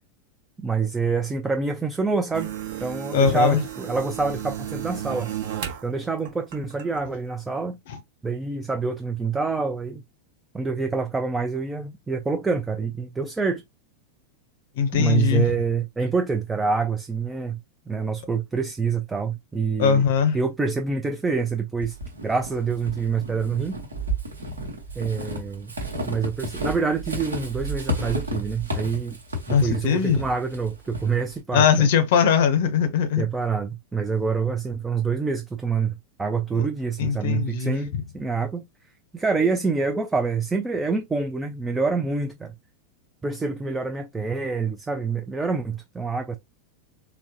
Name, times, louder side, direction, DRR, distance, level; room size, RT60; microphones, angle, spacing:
voice 1, 0.6-2.5 2.8-5.3 5.8-7.8 8.2-10.0 10.5-13.6 14.9-17.6 17.9-20.0 20.3-22.0 22.2-23.8 25.0-25.7 26.0-29.2 29.5-31.9 33.2-38.6 39.1-42.5 43.2-46.4, right 4 dB, 10° right, 0.4 m, -26 dB
sound 1, 2.3-5.9 6.3-7.0, right 11 dB, 55° right, 0.9 m, -33 dB
voice 2, 3.1-3.6 7.9-8.0 14.8-15.4 19.8-20.4 29.5-30.2 31.5-33.2 36.5-36.7 37.0-37.8, left 7 dB, 55° left, 0.7 m, -20 dB
Walk footsteps / Squeak, 21.8-31.4, right 1 dB, 75° right, 1.0 m, -32 dB
3.9 x 2.1 x 2.7 m
figure-of-eight pair, 90°, 0 cm